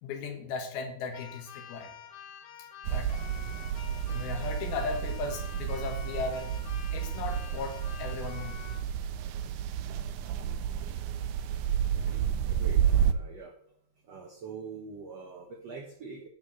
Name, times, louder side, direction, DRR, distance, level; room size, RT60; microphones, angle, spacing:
voice 1, 0.0-1.9 2.9-3.3 4.0-6.6 6.9-8.8, left 4 dB, 85° left, 5 dB, 3.4 m, -37 dB
Keyboard (musical), 1.1-8.9, left 8 dB, 65° left, 1.5 m, -48 dB
sound 1, 2.8-13.1, right 9 dB, 80° right, 1.8 m, -31 dB
voice 2, 11.9-13.5 14.1-16.3, right 5 dB, 60° right, 2 dB, 1.7 m, -44 dB
14.0 x 4.7 x 6.0 m, 0.67 s
omnidirectional pair, 4.2 m